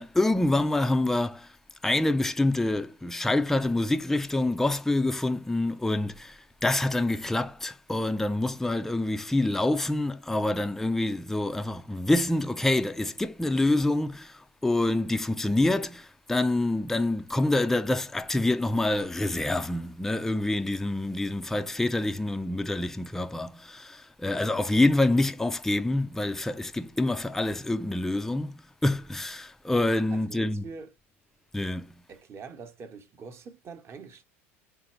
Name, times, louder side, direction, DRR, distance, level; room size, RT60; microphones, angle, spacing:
voice 1, 0.0-1.6 1.8-30.7 31.5-31.9, left 2 dB, 5° left, 0.4 m, -26 dB
voice 2, 30.1-30.9 32.1-34.2, right 5 dB, 35° right, 0.9 m, -44 dB
3.8 x 2.9 x 4.2 m
hypercardioid pair, 80°, 7 cm